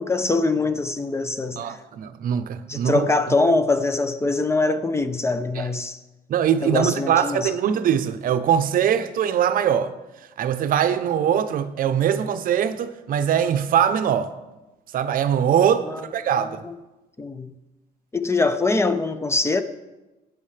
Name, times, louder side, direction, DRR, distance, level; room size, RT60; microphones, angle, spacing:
voice 1, 0.0-1.8 2.7-6.0 6.6-7.5 15.8-16.0 16.4-16.7 17.2-17.5 18.1-19.6, left 3 dB, 15° left, 0.6 m, -23 dB
voice 2, 1.6-3.1 5.5-5.7 6.3-9.9 10.4-14.3 14.9-16.6, right 9 dB, 55° right, 0.7 m, -22 dB
15.0 x 9.2 x 3.3 m
cardioid pair, 110°, 17 cm